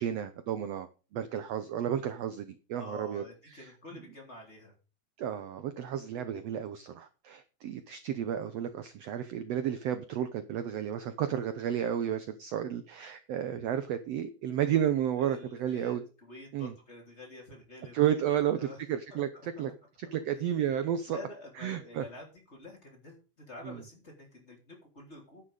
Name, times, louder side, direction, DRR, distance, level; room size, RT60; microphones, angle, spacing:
voice 1, 0.0-3.2 3.5-3.7 5.2-16.0 16.5-16.7 17.9-19.7 20.0-21.2 21.6-22.0 23.6-23.8, right 10 dB, 75° right, 11 dB, 1.5 m, -32 dB
voice 2, 2.7-4.7 15.2-18.8 19.1-19.2 20.0-20.1 21.1-25.4, left 2 dB, 20° left, 0 dB, 3.4 m, -48 dB
10.0 x 9.9 x 5.0 m, 0.34 s
omnidirectional pair, 4.0 m